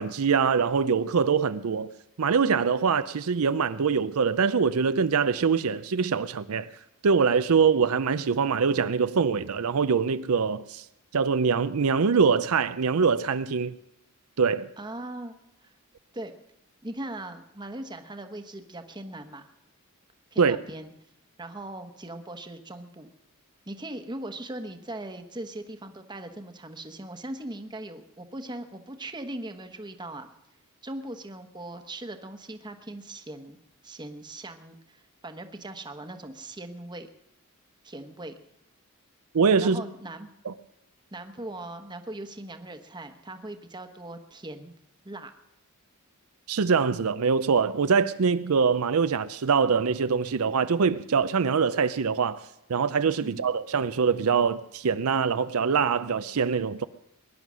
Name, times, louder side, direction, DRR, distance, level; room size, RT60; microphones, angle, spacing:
voice 1, 0.0-1.9 2.2-6.7 7.0-10.8 11.1-13.7 14.4-14.7 20.4-20.6 39.3-39.8 40.5-40.6 46.5-52.4 52.7-56.9, right 5 dB, 75° right, 0.5 m, -24 dB
voice 2, 14.8-15.4 15.6-15.7 16.1-16.3 16.8-19.5 20.3-20.9 21.4-23.1 23.7-30.3 30.8-37.1 37.8-38.3 39.6-40.3 41.1-44.7 45.0-45.3 53.2-53.4, right 1 dB, 20° right, 1.1 m, -39 dB
21.0 x 11.0 x 6.2 m
head